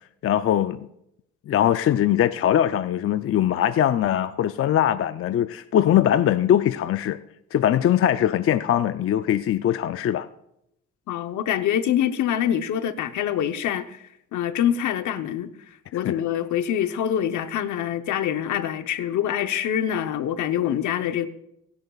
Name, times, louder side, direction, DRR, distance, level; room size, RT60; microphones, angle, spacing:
voice 1, 0.2-0.9 1.5-7.2 7.5-10.3 16.0-16.2, left 11 dB, 50° left, 0.5 m, -21 dB
voice 2, 11.1-14.0 14.3-15.5 15.9-21.3, left 10 dB, 75° left, 0.9 m, -25 dB
25.0 x 11.0 x 2.4 m
cardioid pair, 90°, 30 cm